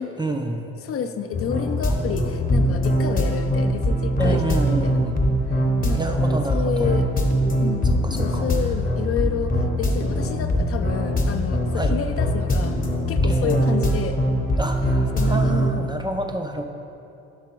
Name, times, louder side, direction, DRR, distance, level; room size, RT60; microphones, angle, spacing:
voice 1, 0.2-0.8 1.9-2.3 4.2-5.1 5.9-6.9 7.8-8.4 11.7-12.0 13.2-13.7 14.6-16.7, right 2 dB, 15° right, 4 dB, 0.3 m, -28 dB
voice 2, 0.8-5.0 5.5-6.2 6.5-7.1 7.6-12.8 13.1-14.2 15.1-15.5, left 7 dB, 50° left, 7 dB, 0.4 m, -30 dB
sound 1, 1.3-15.7, equal, 30° left, 0.8 m, -22 dB
5.9 x 4.7 x 4.4 m, 2.8 s
cardioid pair, 90°, 30 cm